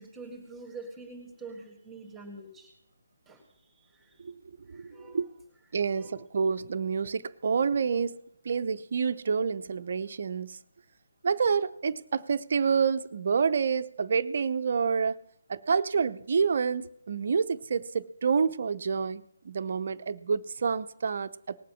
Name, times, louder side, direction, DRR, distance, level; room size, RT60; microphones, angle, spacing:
voice 1, 0.0-2.7 3.3-4.2 4.7-5.3 5.9-6.2, right 3 dB, 5° right, 2 dB, 2.1 m, -46 dB
voice 2, 4.7-5.3 5.7-10.6 11.2-15.2 15.5-21.6, right 5 dB, 50° right, 10 dB, 0.7 m, -28 dB
19.0 x 7.6 x 6.3 m, 0.77 s
figure-of-eight pair, 145°, 0 cm